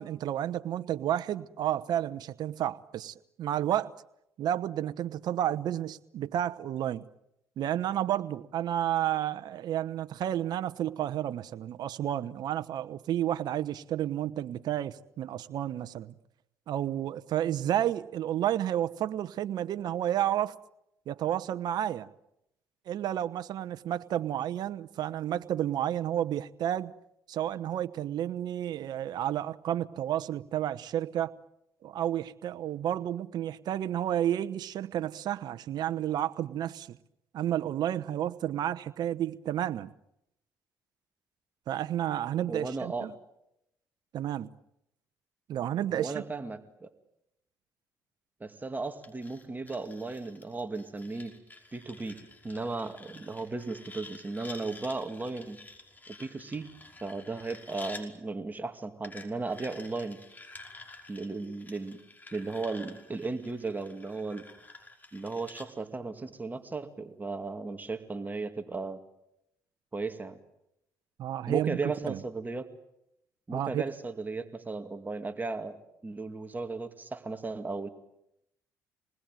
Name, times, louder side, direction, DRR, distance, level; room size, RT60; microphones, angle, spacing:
voice 1, 0.0-3.9 4.4-7.1 7.6-16.1 16.7-20.5 21.1-22.1 22.9-26.9 27.3-31.3 31.8-37.0 37.3-39.9 41.7-43.1 44.1-44.5 45.5-46.2 71.2-71.8 72.1-72.2 73.5-73.8, right 11 dB, 65° right, 12 dB, 1.0 m, -31 dB
voice 2, 42.5-43.1 45.9-46.9 48.4-51.3 51.7-52.2 52.4-55.6 56.2-56.7 57.0-60.2 61.1-62.0 62.3-64.4 65.1-69.0 69.9-70.4 71.5-72.7 73.5-77.9, right 3 dB, 25° right, 7 dB, 2.3 m, -35 dB
sound 1, 49.0-58.1 59.0-65.7, left 3 dB, 25° left, 5.4 m, -50 dB
27.0 x 20.5 x 9.2 m, 0.82 s
supercardioid pair, 75°, 8 cm